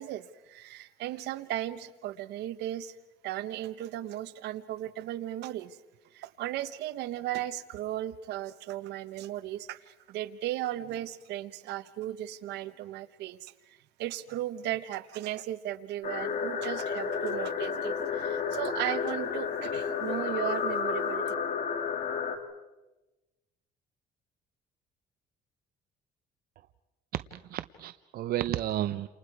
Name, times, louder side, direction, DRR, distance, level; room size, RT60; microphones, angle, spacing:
voice 1, 0.0-3.0 3.2-5.8 6.1-21.3, right 13 dB, 80° right, 13 dB, 1.1 m, -36 dB
sound 1, 16.0-22.4, left 6 dB, 55° left, 2.6 m, -31 dB
voice 2, 27.1-29.1, right 12 dB, 60° right, 11 dB, 0.7 m, -32 dB
30.0 x 28.0 x 4.8 m, 1.1 s
cardioid pair, 110°, 17 cm